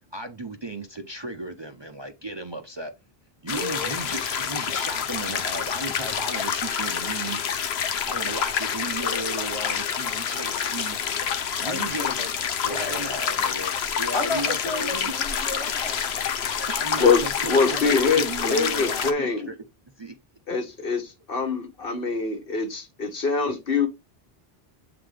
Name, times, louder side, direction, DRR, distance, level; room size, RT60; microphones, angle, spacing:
voice 1, 0.1-2.9 3.4-7.7 8.1-11.0 11.6-12.3 12.7-13.7 14.0-15.1 16.5-19.6 20.0-20.1, right 2 dB, 30° right, 0.6 m, -35 dB
sound 1, 3.5-19.1, left 8 dB, 85° left, 1.0 m, -28 dB
voice 2, 3.5-3.9 11.6-12.3 12.6-13.0 14.1-16.7 17.7-17.9, left 2 dB, 30° left, 1.2 m, -34 dB
voice 3, 17.0-19.5 20.5-23.9, left 4 dB, 65° left, 1.4 m, -24 dB
7.6 x 3.9 x 3.3 m
omnidirectional pair, 1.0 m